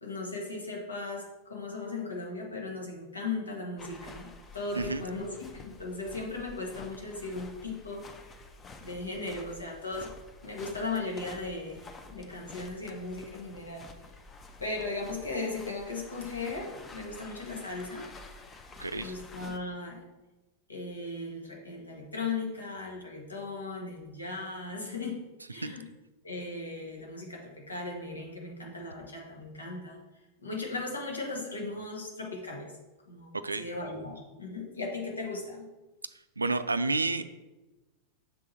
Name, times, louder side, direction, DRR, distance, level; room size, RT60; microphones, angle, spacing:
voice 1, 0.0-5.4 5.6-8.1 8.8-10.1 10.4-11.8 12.1-13.9 14.6-18.1 18.9-20.1 20.7-25.2 25.5-25.9 26.2-30.0 30.4-32.7 33.1-35.7, left 3 dB, 75° left, -1 dB, 1.4 m, -37 dB
sound 1, 3.8-19.6, left 3 dB, 20° left, 0.6 m, -49 dB
voice 2, 18.8-19.1 25.6-25.7 33.4-33.7 36.4-37.2, right 3 dB, 80° right, 12 dB, 0.3 m, -30 dB
6.6 x 3.8 x 4.1 m, 1.1 s
figure-of-eight pair, 90°, 0 cm